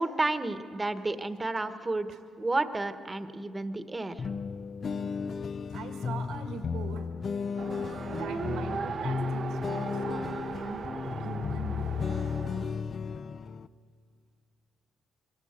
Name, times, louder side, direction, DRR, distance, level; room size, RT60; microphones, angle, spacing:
voice 1, 0.0-2.1 2.4-4.2, right 2 dB, 20° right, 9 dB, 1.2 m, -31 dB
sound 1, 4.2-13.7, left 5 dB, 45° left, 0.5 m, -34 dB
voice 2, 5.7-7.1 8.0-12.0, right 5 dB, 85° right, 5 dB, 1.9 m, -42 dB
Race car auto racing, 7.6-12.8, right 6 dB, 55° right, 0.8 m, -38 dB
24.0 x 17.0 x 8.1 m, 2.2 s
cardioid pair, 90°, 0 cm